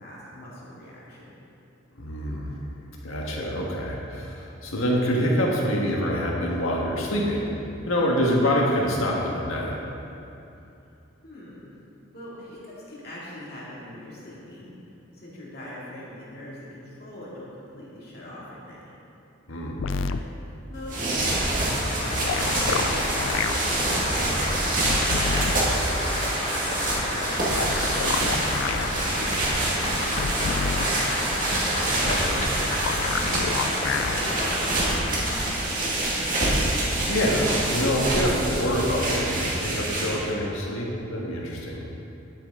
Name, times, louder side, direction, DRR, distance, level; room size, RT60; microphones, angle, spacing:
voice 1, 0.0-1.3 10.8-10.9 11.2-11.7 12.1-14.7 15.1-18.9 20.1-25.1 25.6-29.3 29.6-29.7 30.0-31.2 33.0-35.7, left 1 dB, 50° left, -7 dB, 2.4 m, -43 dB
voice 2, 2.0-2.6 3.0-7.5 7.8-9.8 19.5-19.8 32.0-32.5 36.4-41.8, equal, 85° left, -2 dB, 1.6 m, -26 dB
sound 1, 19.8-20.2 22.2-23.5 24.8-25.5 27.5-28.9 30.2-30.9 32.8-34.2 35.5-35.6, left 5 dB, 70° left, 0.4 m, -28 dB
sound 2, 20.7-40.3, right 1 dB, 40° right, 2.0 m, -26 dB
Applause, 20.9-35.8, left 1 dB, 30° left, 1.1 m, -31 dB
11.5 x 8.3 x 3.8 m, 2.8 s
head